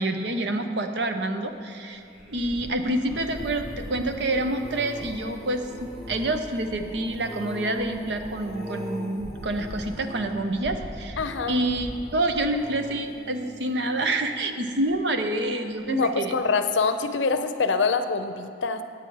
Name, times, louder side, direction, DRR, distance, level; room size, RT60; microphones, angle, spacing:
voice 1, 0.0-2.0 2.3-11.2 11.5-16.3, right 1 dB, 65° right, 6 dB, 0.7 m, -27 dB
sound 1, 2.0-15.3 15.8-16.2 16.4-16.5, equal, ahead, 1.2 m, -40 dB
voice 2, 11.2-11.6 15.9-18.8, left 4 dB, 85° left, 9 dB, 0.6 m, -25 dB
9.8 x 8.6 x 4.6 m, 2.8 s
head